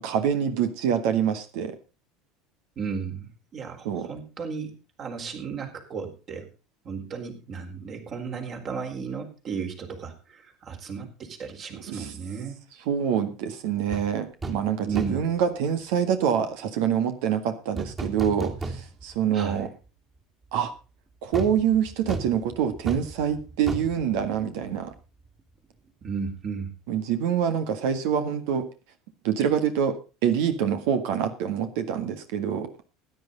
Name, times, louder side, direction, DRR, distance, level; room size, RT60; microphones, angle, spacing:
voice 1, 0.0-1.8 3.8-4.1 11.7-12.1 12.9-19.7 20.5-20.7 21.2-24.9 26.9-28.7 29.2-32.8, right 8 dB, 65° right, 8 dB, 1.7 m, -26 dB
voice 2, 2.8-6.5 6.8-12.6 14.8-15.2 19.3-19.7 26.0-26.7, right 5 dB, 45° right, 3 dB, 4.2 m, -34 dB
sound 1, 13.9-14.1 14.4-14.7 15.0-15.4 17.8-19.2 19.6-19.7 21.3-25.0 25.3-25.4, right 3 dB, 25° right, 3.0 m, -35 dB
16.5 x 10.5 x 4.0 m, 0.32 s
figure-of-eight pair, 70°, 0 cm